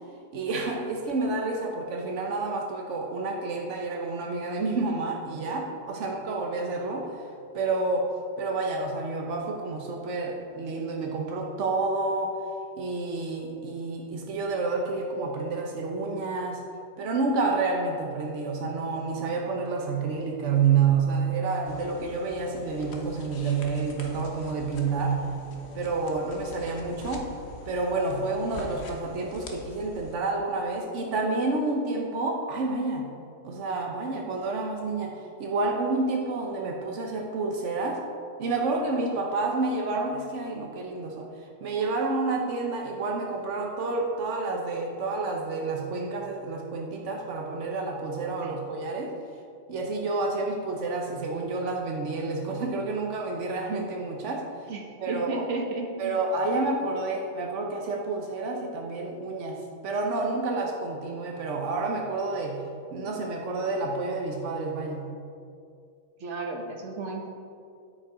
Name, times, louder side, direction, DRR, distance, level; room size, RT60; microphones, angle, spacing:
voice 1, 0.3-7.3 7.5-12.5 12.8-16.6 17.0-25.3 25.7-27.3 27.7-33.1 33.4-38.1 38.4-49.2 49.7-54.7 55.0-55.5 56.0-65.1, right 3 dB, 70° right, 1 dB, 0.7 m, -29 dB
sound 1, 21.7-30.1, left 2 dB, 45° left, 0.8 m, -44 dB
voice 2, 54.7-56.1 66.2-67.3, right 3 dB, 45° right, 2 dB, 1.0 m, -34 dB
9.9 x 8.5 x 4.8 m, 2.4 s
omnidirectional pair, 2.4 m